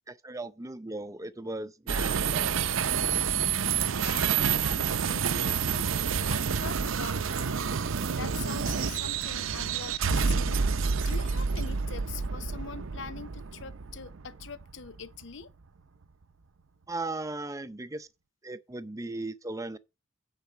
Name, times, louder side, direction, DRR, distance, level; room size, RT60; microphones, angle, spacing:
voice 1, 0.1-2.5 16.9-18.1 18.4-19.8, right 2 dB, 15° right, 0.6 m, -37 dB
sound 1, 1.9-15.2, right 6 dB, 85° right, 0.6 m, -29 dB
voice 2, 4.0-5.9 6.3-7.7 8.1-10.7 11.0-15.5, left 5 dB, 65° left, 0.7 m, -43 dB
9.3 x 4.2 x 6.9 m
head